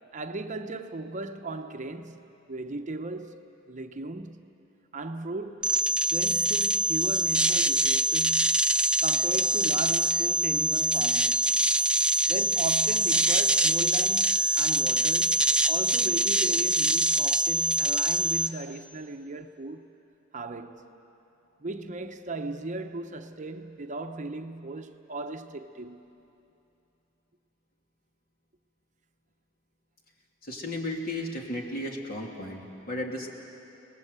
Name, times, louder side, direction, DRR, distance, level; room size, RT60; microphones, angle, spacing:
voice 1, 0.1-3.4 3.7-4.5 4.9-5.7 6.1-8.6 9.0-11.5 12.3-19.9 20.3-20.9 21.6-26.1, right 2 dB, 40° right, 0.9 m, -37 dB
sound 1, 5.6-18.5, right 1 dB, 5° right, 0.6 m, -24 dB
voice 2, 30.4-33.3, left 1 dB, 50° left, 2.9 m, -34 dB
30.0 x 19.0 x 8.1 m
head